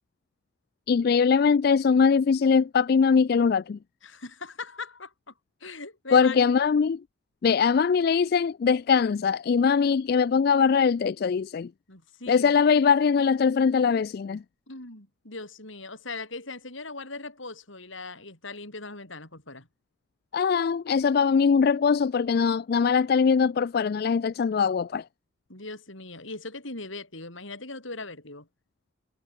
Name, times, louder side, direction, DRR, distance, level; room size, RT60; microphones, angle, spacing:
voice 1, 0.9-3.8 6.1-7.0 7.4-11.7 12.3-14.4 20.3-25.1, left 6 dB, 50° left, 0.3 m, -22 dB
voice 2, 4.0-5.3 5.6-6.4 11.9-12.5 14.7-19.7 25.5-28.5, left 3 dB, 75° left, 6.8 m, -39 dB
head